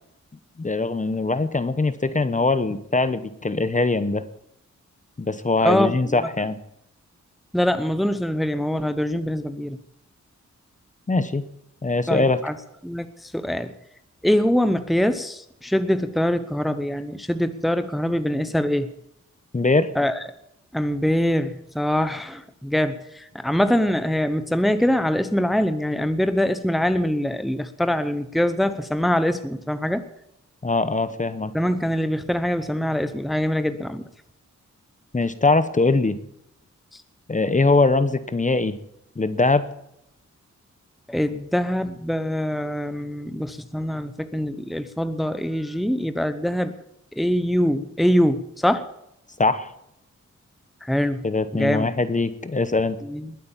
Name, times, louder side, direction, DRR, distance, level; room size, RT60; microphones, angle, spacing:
voice 1, 0.6-4.2 5.2-6.6 11.1-11.4 11.8-12.4 19.5-19.9 30.6-31.5 35.1-36.2 37.3-38.8 39.2-39.7 49.4-49.7 51.2-53.0, left 3 dB, 25° left, 12 dB, 1.0 m, -22 dB
voice 2, 5.6-6.2 7.5-9.8 12.1-12.5 12.8-13.7 14.2-18.9 19.9-20.2 20.7-30.0 31.5-34.0 36.9-37.0 41.1-46.7 47.1-48.9 50.8-51.3 51.5-51.9 53.0-53.3, equal, ahead, 11 dB, 0.9 m, -23 dB
21.0 x 8.5 x 7.3 m, 0.77 s
wide cardioid pair, 120°, 29 cm